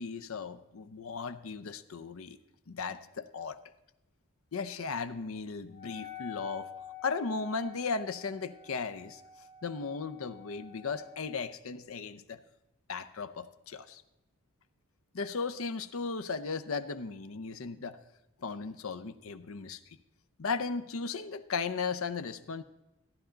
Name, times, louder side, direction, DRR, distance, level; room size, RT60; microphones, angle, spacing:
voice 1, 0.0-2.4 2.7-3.6 4.5-6.7 7.0-9.2 9.6-12.4 12.9-14.0 15.1-18.0 18.4-20.0 20.4-22.6, left 4 dB, 75° left, 13 dB, 0.6 m, -36 dB
Wind instrument woodwind instrument, 5.7-11.5, left 9 dB, 30° left, 3.0 m, -48 dB
15.0 x 10.5 x 3.9 m, 0.94 s
head